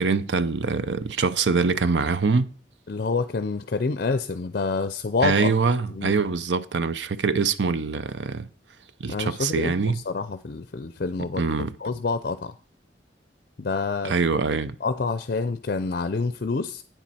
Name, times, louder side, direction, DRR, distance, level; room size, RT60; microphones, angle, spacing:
voice 1, 0.0-2.5 5.2-8.5 9.0-10.0 11.4-11.7 14.0-14.8, right 4 dB, 80° right, 0.6 m, -24 dB
voice 2, 2.9-5.5 5.9-6.1 9.1-11.5 11.8-12.5 13.6-14.1 14.8-16.8, left 4 dB, 55° left, 0.5 m, -27 dB
9.2 x 7.4 x 4.2 m
head